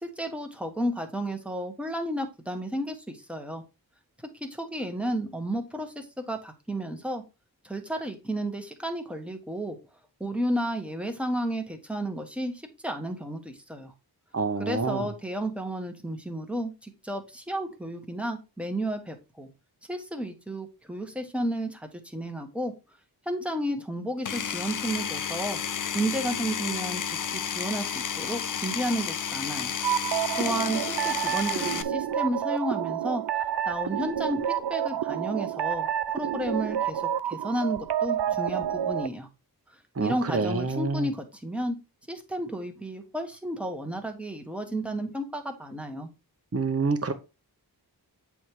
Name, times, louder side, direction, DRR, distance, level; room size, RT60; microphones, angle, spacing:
voice 1, 0.0-3.6 4.4-7.2 7.6-9.8 10.2-13.9 14.6-19.5 19.9-22.7 23.2-25.6 25.9-29.7 30.1-33.2 33.7-35.9 36.1-39.3 40.0-41.8 42.1-46.1, right 1 dB, 5° right, 1.4 m, -32 dB
voice 2, 14.3-15.1 40.0-41.1 46.5-47.1, right 4 dB, 35° right, 1.0 m, -27 dB
Power tool, 24.2-31.8, left 8 dB, 50° left, 0.6 m, -32 dB
sound 1, 29.8-39.1, right 10 dB, 80° right, 0.6 m, -29 dB
8.3 x 3.6 x 4.6 m
wide cardioid pair, 100°, 40 cm